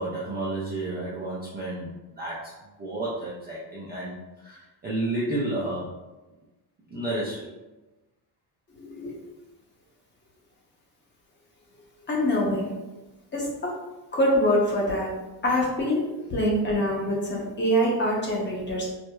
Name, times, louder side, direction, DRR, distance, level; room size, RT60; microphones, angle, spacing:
voice 1, 0.0-2.5 2.8-5.9 6.9-7.5, right 2 dB, 25° right, -6 dB, 0.3 m, -31 dB
voice 2, 8.8-9.1 12.1-12.7 13.3-13.7 14.1-15.1 15.4-16.0 16.3-18.9, equal, 25° left, -3 dB, 0.7 m, -24 dB
4.5 x 2.0 x 2.2 m, 1.1 s
cardioid pair, 145°, 48 cm